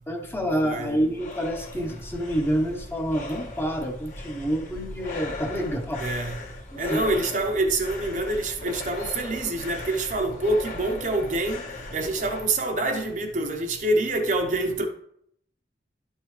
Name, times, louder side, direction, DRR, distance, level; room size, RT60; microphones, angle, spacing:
voice 1, 0.1-6.0 6.7-7.0, equal, 15° left, 1.0 m, -28 dB
sound 1, 0.6-12.5, left 2 dB, 45° left, 1.4 m, -38 dB
voice 2, 0.6-1.0 6.0-6.4 6.8-11.6 11.9-14.9, right 2 dB, 45° right, 0.9 m, -26 dB
11.5 x 5.5 x 3.3 m
head